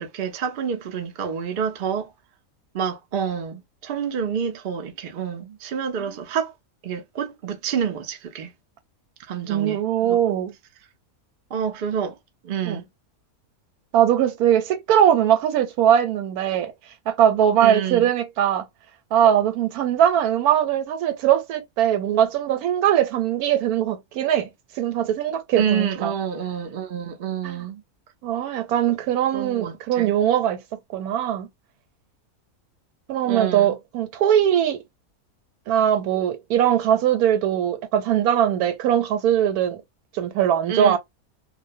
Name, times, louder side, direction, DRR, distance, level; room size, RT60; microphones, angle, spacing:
voice 1, 0.0-2.1 2.7-6.5 6.8-8.5 9.3-10.2 11.5-12.2 12.4-12.9 17.6-18.1 25.6-27.8 29.3-30.1 33.2-33.8 40.7-41.0, right 7 dB, 60° right, 0.5 m, -28 dB
voice 2, 9.5-10.5 12.6-12.8 13.9-16.7 17.1-18.7 19.1-24.5 24.8-26.1 27.4-27.6 28.2-30.6 30.9-31.5 33.1-34.8 35.7-39.8 40.1-41.0, right 10 dB, 90° right, 1.1 m, -21 dB
2.3 x 2.1 x 2.6 m
omnidirectional pair, 1.6 m